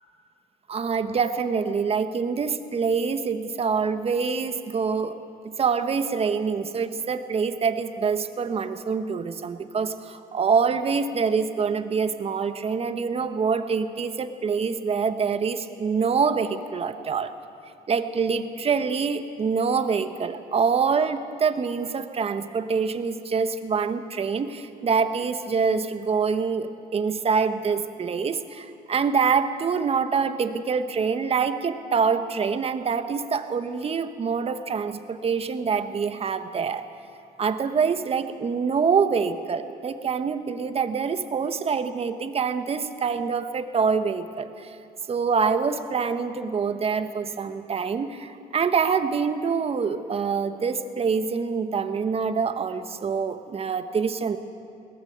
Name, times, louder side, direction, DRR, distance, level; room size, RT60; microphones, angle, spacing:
voice 1, 0.7-5.1 5.6-17.3 17.9-36.8 37.4-44.7 45.1-54.4, right 5 dB, 35° right, 9 dB, 1.3 m, -25 dB
21.5 x 18.5 x 8.1 m, 2.5 s
cardioid pair, 110°, 17 cm